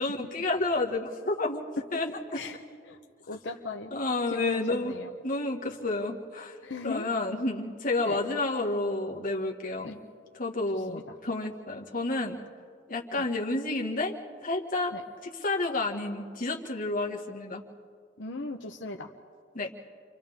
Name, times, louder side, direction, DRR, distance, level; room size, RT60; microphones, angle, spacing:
voice 1, 0.0-1.6 1.9-2.4 3.9-5.0 5.2-6.6 6.8-10.0 10.3-12.4 12.9-14.1 14.4-14.9 15.2-17.6 19.5-19.7, left 2 dB, 50° left, 0 dB, 1.8 m, -30 dB
voice 2, 3.3-3.9 4.3-5.1 6.6-7.1 8.0-8.2 9.8-9.9 10.9-11.1 13.2-13.3 14.9-15.0 18.2-19.1, left 3 dB, 80° left, 2 dB, 0.9 m, -38 dB
30.0 x 25.5 x 3.6 m, 2.2 s
head